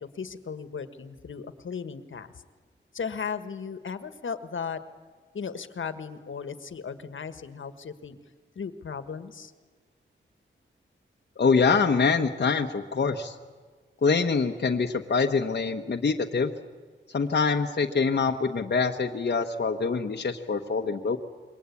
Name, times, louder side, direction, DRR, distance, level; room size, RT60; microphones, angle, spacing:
voice 1, 0.0-2.3 2.9-4.8 5.3-8.2 8.5-9.5, left 6 dB, 70° left, 11 dB, 1.6 m, -36 dB
voice 2, 11.4-13.3 14.0-16.5 17.1-21.2, left 5 dB, 55° left, 2 dB, 1.2 m, -25 dB
27.5 x 22.5 x 8.5 m, 1.5 s
wide cardioid pair, 110°, 21 cm